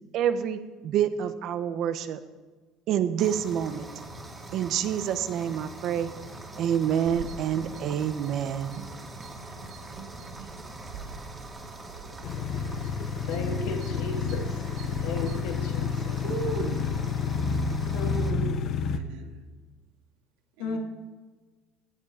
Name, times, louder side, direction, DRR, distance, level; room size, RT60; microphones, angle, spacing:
voice 1, 0.1-2.2 2.9-3.9 4.5-6.1 6.6-8.8, right 9 dB, 55° right, 1.2 m, -27 dB
sound 1, 3.2-18.3, right 2 dB, 15° right, 2.6 m, -43 dB
sound 2, 7.1-16.9, right 7 dB, 70° right, 1.3 m, -46 dB
sound 3, 12.2-19.0, left 5 dB, 50° left, 1.2 m, -29 dB
voice 2, 13.3-14.6 15.0-16.2 17.9-18.7 20.6-20.8, left 4 dB, 80° left, 3.4 m, -35 dB
voice 3, 16.2-16.9 18.9-19.4 20.6-20.8, right 4 dB, 85° right, 2.5 m, -36 dB
17.0 x 14.0 x 5.1 m
cardioid pair, 130°, 0 cm